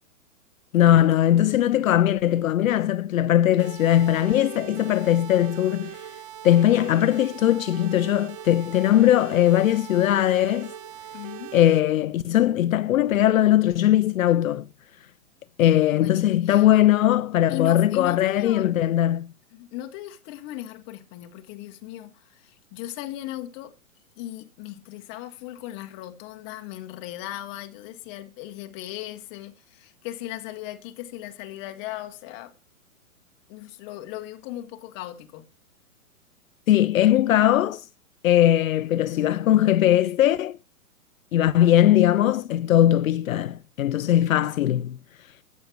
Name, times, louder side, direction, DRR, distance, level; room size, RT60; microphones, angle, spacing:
voice 1, 0.7-6.0 6.4-10.7 11.5-14.7 15.6-19.3 36.7-37.8 38.2-40.6 41.3-45.0, left 12 dB, 75° left, 0.6 m, -20 dB
sound 1, 3.6-11.8, right 12 dB, 25° right, 0.4 m, -40 dB
voice 2, 11.1-11.6 15.9-16.7 17.5-18.9 19.5-23.8 24.2-32.5 33.5-35.5, left 14 dB, 30° left, 1.2 m, -37 dB
9.3 x 8.4 x 4.5 m
hypercardioid pair, 145°, 41 cm